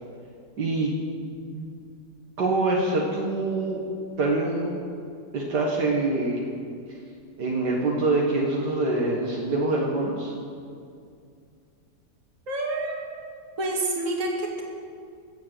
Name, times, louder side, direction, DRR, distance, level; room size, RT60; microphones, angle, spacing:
voice 1, 0.6-0.9 1.5-1.7 2.4-3.8 4.2-4.8 5.3-6.4 7.4-10.3, right 2 dB, 70° right, -2 dB, 2.1 m, -25 dB
voice 2, 12.5-13.0 13.6-14.6, right 2 dB, 45° right, -1 dB, 2.4 m, -28 dB
15.5 x 7.5 x 7.6 m, 2.3 s
omnidirectional pair, 1.9 m